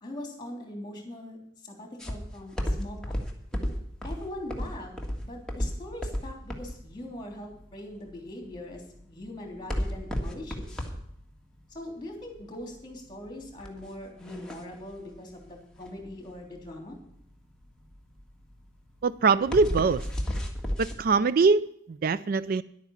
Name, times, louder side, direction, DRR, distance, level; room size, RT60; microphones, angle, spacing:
voice 1, 0.0-1.4 1.6-3.2 4.0-4.9 5.2-10.7 11.7-17.0, left 1 dB, 25° left, 2 dB, 3.2 m, -41 dB
sound 1, 2.0-21.0, equal, 5° left, 1.7 m, -34 dB
voice 2, 19.0-20.1 20.8-22.6, right 4 dB, 50° right, 16 dB, 0.4 m, -23 dB
11.0 x 9.1 x 7.1 m, 0.71 s
head